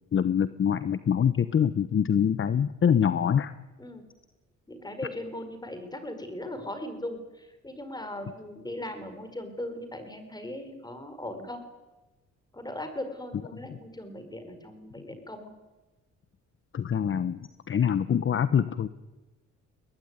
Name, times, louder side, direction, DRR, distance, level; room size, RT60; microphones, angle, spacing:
voice 1, 0.1-3.5 16.7-18.9, left 8 dB, 40° left, 14 dB, 1.0 m, -25 dB
voice 2, 4.7-11.6 12.5-15.5, left 1 dB, 15° left, 8 dB, 5.1 m, -38 dB
22.5 x 19.0 x 9.7 m, 1.1 s
cardioid pair, 90°, 30 cm